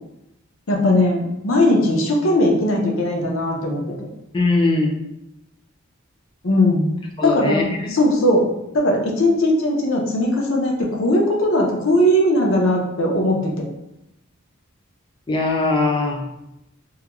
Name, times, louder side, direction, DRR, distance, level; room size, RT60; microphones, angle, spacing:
voice 1, 0.7-3.9 6.4-6.9 7.2-8.5 8.7-13.7, left 1 dB, 70° left, 0 dB, 0.6 m, -19 dB
voice 2, 4.3-5.0 7.2-7.8 15.3-16.2, left 3 dB, 25° left, -1 dB, 0.4 m, -20 dB
2.3 x 2.1 x 2.9 m, 0.88 s
head